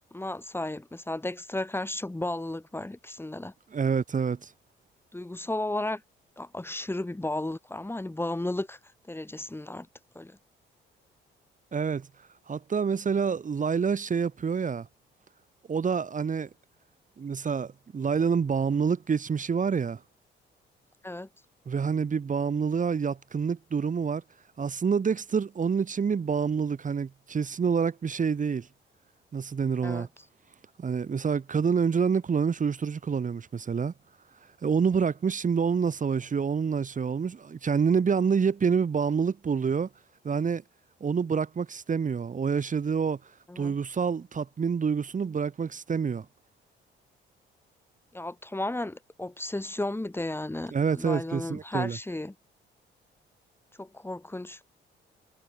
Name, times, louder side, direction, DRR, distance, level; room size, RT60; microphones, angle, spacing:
voice 1, 0.0-3.5 5.1-6.0 6.4-8.8 9.1-9.9 10.1-10.4 21.0-21.3 29.8-30.1 43.5-43.8 48.1-52.3 53.8-54.6, left 1 dB, 10° left, 6.1 m, -34 dB
voice 2, 3.7-4.5 11.7-12.1 12.5-14.9 15.7-16.5 17.2-20.0 21.7-24.2 24.6-28.7 29.3-30.1 30.8-33.9 34.6-39.9 40.2-40.6 41.0-43.2 43.5-46.2 50.7-52.0, right 6 dB, 40° right, 3.0 m, -27 dB
cardioid pair, 90°, 20 cm